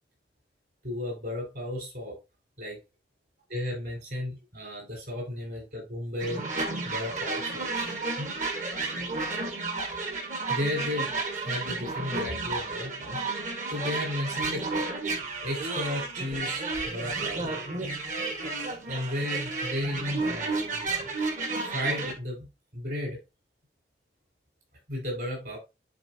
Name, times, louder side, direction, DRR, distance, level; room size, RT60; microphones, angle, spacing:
voice 1, 0.8-2.2 2.6-2.8 3.5-6.4 6.8-8.4 10.5-13.2 13.7-14.7 15.4-17.5 18.9-20.9 21.5-22.5 22.7-23.2 24.9-25.6, left 1 dB, 60° right, 4.6 m, -34 dB
sound 1, 6.2-22.1, right 3 dB, 45° right, 1.4 m, -32 dB
10.5 x 4.1 x 2.7 m
head